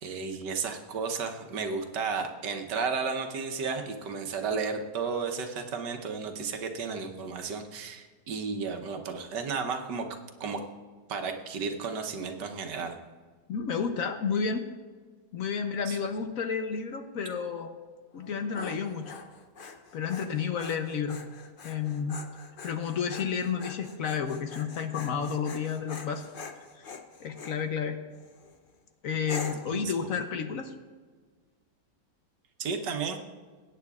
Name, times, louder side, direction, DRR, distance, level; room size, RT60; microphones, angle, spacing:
voice 1, 0.0-10.1 10.4-10.6 11.1-13.0 15.9-16.0 29.7-29.8 32.6-33.2, right 5 dB, 85° right, 4 dB, 1.6 m, -33 dB
voice 2, 13.5-14.7 15.3-17.7 18.1-19.1 19.9-21.2 21.6-22.2 22.6-26.3 26.7-26.9 27.2-28.0 29.0-30.7, left 6 dB, 60° left, 7 dB, 1.0 m, -31 dB
Dog, 18.2-27.6 28.2-28.6 29.3-29.8, left 4 dB, 45° left, 0.7 m, -44 dB
21.5 x 9.3 x 2.4 m, 1.5 s
omnidirectional pair, 1.8 m